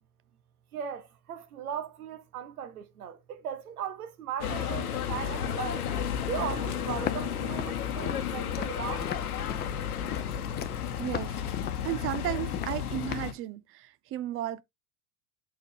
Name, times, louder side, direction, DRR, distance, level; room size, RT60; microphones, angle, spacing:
voice 1, 0.7-5.9 6.3-9.1, right 8 dB, 80° right, 1.2 m, -37 dB
sound 1, 4.4-13.3, left 9 dB, 85° left, 1.0 m, -32 dB
Walk footsteps, 7.0-13.4, left 9 dB, 25° left, 0.6 m, -39 dB
voice 2, 11.0-11.3 11.8-14.6, right 13 dB, 30° right, 0.5 m, -34 dB
6.5 x 4.3 x 3.5 m
hypercardioid pair, 95°, 43 cm